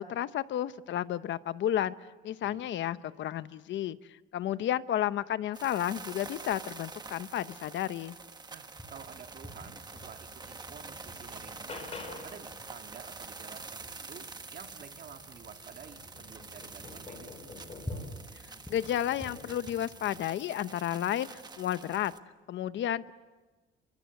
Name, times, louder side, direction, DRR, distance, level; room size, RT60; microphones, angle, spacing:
voice 1, 0.0-1.9 2.2-8.2 18.7-22.1 22.5-23.1, left 11 dB, 65° left, 13 dB, 0.9 m, -32 dB
sound 1, 5.5-22.2, right 4 dB, 20° right, 1.2 m, -47 dB
voice 2, 8.5-11.8 12.2-17.5, right 7 dB, 50° right, 5 dB, 2.0 m, -50 dB
sound 2, 8.8-20.3, equal, 5° left, 7.4 m, -49 dB
sound 3, 10.1-10.2 10.7-12.5 14.9-15.0 15.4-18.4 19.1-19.6 20.6-20.9, left 3 dB, 30° left, 4.7 m, -47 dB
28.5 x 24.5 x 8.1 m, 1.2 s
cardioid pair, 160°, 21 cm